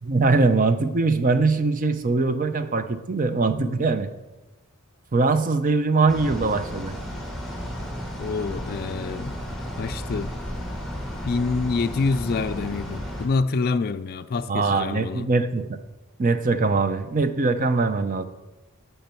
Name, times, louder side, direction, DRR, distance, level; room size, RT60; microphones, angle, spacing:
voice 1, 0.0-4.1 5.1-7.0 14.5-15.8 16.2-18.2, right 3 dB, 40° right, 0.6 m, -22 dB
sound 1, 6.1-13.3, equal, ahead, 1.4 m, -33 dB
voice 2, 8.2-9.4 9.8-10.4 11.2-15.3, left 4 dB, 45° left, 0.4 m, -27 dB
12.0 x 5.7 x 4.5 m
head